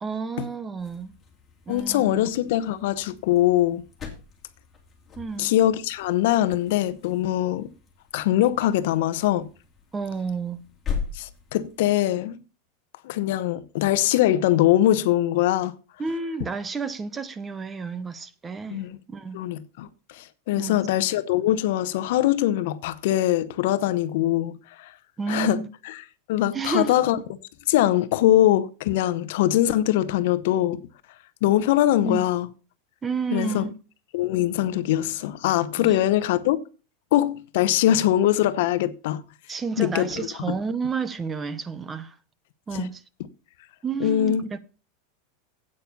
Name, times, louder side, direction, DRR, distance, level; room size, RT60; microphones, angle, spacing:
voice 1, 0.0-1.1 1.7-2.2 5.2-5.5 9.9-10.6 16.0-19.4 20.5-20.8 25.2-25.7 26.5-26.9 32.0-32.2 33.0-33.7 35.8-36.0 39.5-42.2 42.7-43.0 43.8-44.6, right 5 dB, 15° right, 0.7 m, -30 dB
sound 1, 0.7-11.9, left 6 dB, 15° left, 2.9 m, -40 dB
voice 2, 1.7-3.8 5.4-7.7 8.1-9.5 11.1-12.4 13.0-15.7 18.7-19.0 19.3-24.9 25.3-25.6 26.3-27.2 27.7-30.8 31.4-32.5 33.3-33.6 34.1-36.6 37.1-39.2 39.8-40.1 42.7-42.9 44.0-44.4, left 13 dB, 65° left, 0.9 m, -22 dB
9.1 x 8.7 x 5.4 m
supercardioid pair, 150°, 0 cm